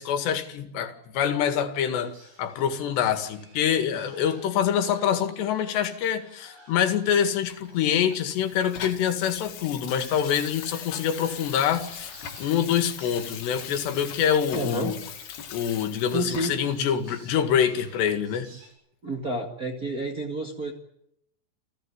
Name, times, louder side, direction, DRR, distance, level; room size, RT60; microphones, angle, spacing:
voice 1, 0.0-2.1 2.4-15.0 15.5-18.5, left 9 dB, 85° left, 9 dB, 4.1 m, -25 dB
sound 1, 2.0-18.7, right 2 dB, 75° right, 9.6 m, -53 dB
Water tap faucet / Sink (filling or washing), 7.5-16.8 17.3-17.4, left 8 dB, 65° left, 3.7 m, -41 dB
voice 2, 14.5-14.9 16.1-16.5 19.0-20.7, right 1 dB, 30° right, 2 dB, 1.7 m, -29 dB
29.5 x 15.5 x 9.9 m, 0.77 s
omnidirectional pair, 4.8 m